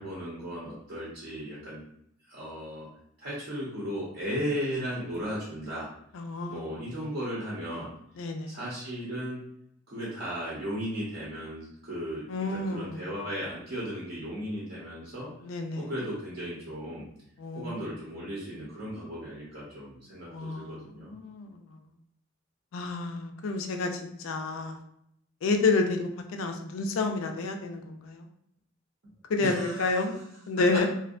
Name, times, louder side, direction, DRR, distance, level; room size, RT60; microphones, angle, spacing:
voice 1, 0.0-1.8 2.3-2.9 3.2-5.9 6.5-7.9 8.5-9.4 9.9-15.3 15.7-17.1 17.5-21.1 29.4-30.1 30.5-30.6, equal, 60° right, -7 dB, 0.7 m, -36 dB
voice 2, 6.1-6.6 8.2-8.5 12.3-13.0 15.4-15.9 17.4-17.7 20.3-21.6 22.7-24.8 25.4-28.2 29.3-30.2 30.5-30.9, left 3 dB, 85° left, 5 dB, 0.4 m, -29 dB
2.6 x 2.1 x 2.4 m, 0.73 s
head